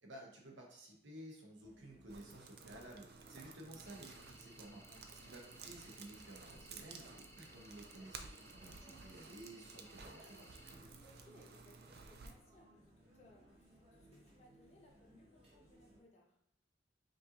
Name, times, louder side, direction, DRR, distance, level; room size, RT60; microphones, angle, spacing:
voice 1, 0.0-4.8 5.2-10.9, right 1 dB, 80° right, -1 dB, 1.1 m, -54 dB
sound 1, 1.6-16.0, right 1 dB, 35° right, 1.1 m, -64 dB
sound 2, 2.1-12.3, right 5 dB, 55° right, 0.4 m, -55 dB
sound 3, 3.9-10.7, left 1 dB, 15° left, 0.5 m, -62 dB
voice 2, 4.8-5.2 7.0-7.2 8.4-8.9 11.0-16.4, left 2 dB, 35° left, -2 dB, 0.9 m, -66 dB
5.2 x 2.6 x 2.9 m, 0.77 s
head